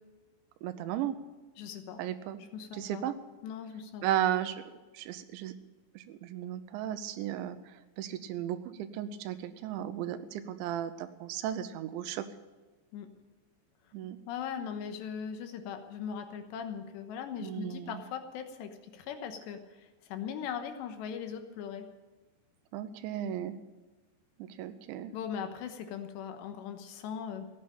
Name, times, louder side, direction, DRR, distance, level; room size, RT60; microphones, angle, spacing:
voice 1, 0.6-1.1 2.0-2.4 2.7-3.1 4.0-4.6 4.9-5.5 6.0-7.6 8.0-12.3 13.9-14.2 17.4-18.0 22.7-23.6 24.4-25.1, right 11 dB, 85° right, 11 dB, 3.2 m, -35 dB
voice 2, 1.6-2.0 2.5-3.0 3.4-4.0 12.9-13.1 14.3-21.9 25.1-27.5, left 7 dB, 80° left, 7 dB, 3.2 m, -39 dB
16.0 x 9.2 x 8.7 m, 1.2 s
omnidirectional pair, 5.2 m